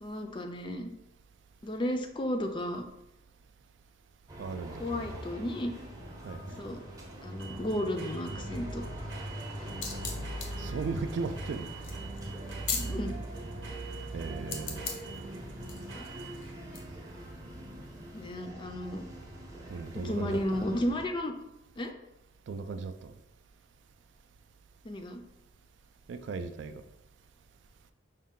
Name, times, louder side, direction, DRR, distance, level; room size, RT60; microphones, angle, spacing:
voice 1, 0.0-0.9 1.6-2.8 4.8-5.7 6.6-6.8 7.2-8.8 9.6-9.7 12.7-13.2 15.9-16.0 18.1-19.0 20.0-21.3 21.8-21.9 24.8-25.2, left 1 dB, 25° left, 0.3 m, -33 dB
sound 1, 4.3-21.1, right 1 dB, 20° right, 0.6 m, -42 dB
voice 2, 4.4-5.0 6.2-6.6 10.6-11.7 14.1-14.8 19.7-20.6 22.5-23.1 26.1-26.8, right 4 dB, 65° right, 0.3 m, -37 dB
sound 2, 5.5-16.8, right 3 dB, 85° right, 0.8 m, -46 dB
sound 3, 9.3-13.2 14.5-15.2 15.7-16.8, left 5 dB, 85° left, 0.7 m, -38 dB
5.2 x 2.2 x 3.6 m
head